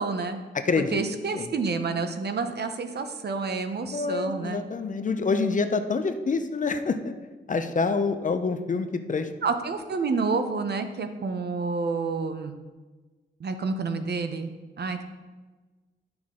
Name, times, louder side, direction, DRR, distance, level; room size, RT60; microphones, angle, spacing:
voice 1, 0.0-0.4 0.9-4.6 9.4-12.6 13.4-15.0, right 4 dB, 60° right, 7 dB, 0.8 m, -29 dB
voice 2, 0.5-1.0 1.3-1.5 3.9-7.1 7.5-9.3, left 4 dB, 40° left, 8 dB, 0.6 m, -26 dB
10.0 x 6.1 x 3.7 m, 1.3 s
wide cardioid pair, 105°, 19 cm